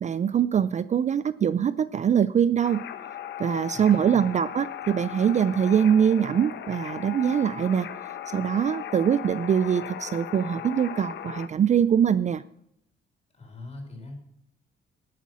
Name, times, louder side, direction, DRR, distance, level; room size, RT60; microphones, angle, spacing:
voice 1, 0.0-2.8 3.4-7.9 8.3-12.4, right 8 dB, 35° right, 16 dB, 0.4 m, -23 dB
sound 1, 2.6-11.5, left 10 dB, 65° left, 1.0 m, -37 dB
voice 2, 3.7-4.3 13.3-14.1, left 2 dB, 30° left, 2 dB, 4.2 m, -41 dB
11.0 x 8.5 x 6.2 m, 0.74 s
cardioid pair, 90°, 20 cm